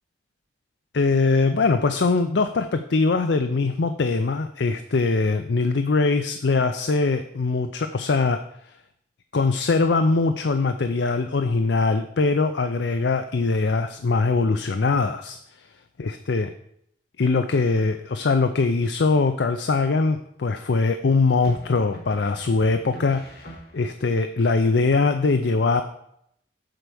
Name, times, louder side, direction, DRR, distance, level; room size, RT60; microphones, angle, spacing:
voice 1, 0.9-8.4 9.3-15.4 16.0-16.5 17.2-25.8, left 3 dB, 75° left, 8 dB, 0.5 m, -22 dB
sound 1, 18.8-19.4 21.4-24.1, equal, 55° left, 1.8 m, -45 dB
7.7 x 4.6 x 6.9 m, 0.73 s
head